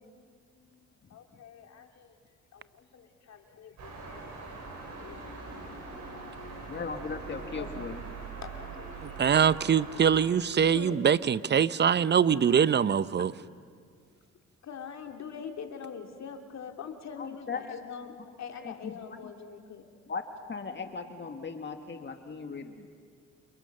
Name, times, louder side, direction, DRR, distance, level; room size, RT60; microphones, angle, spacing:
voice 1, 1.1-2.2 2.5-6.7 7.6-7.9 8.4-9.6 9.9-10.2 10.7-11.0 12.3-12.7 13.2-13.3 14.6-19.9, left 7 dB, 60° left, 4 dB, 2.8 m, -45 dB
sound 1, 3.8-10.3, right 4 dB, 65° right, 7.1 m, -42 dB
voice 2, 6.7-8.0 17.2-17.8 18.6-19.3 20.1-20.2 20.5-22.9, left 5 dB, 35° left, 6 dB, 1.8 m, -38 dB
voice 3, 9.2-13.3, right 7 dB, 35° right, 16 dB, 0.7 m, -23 dB
29.0 x 28.5 x 6.6 m, 2.1 s
cardioid pair, 90°, 30 cm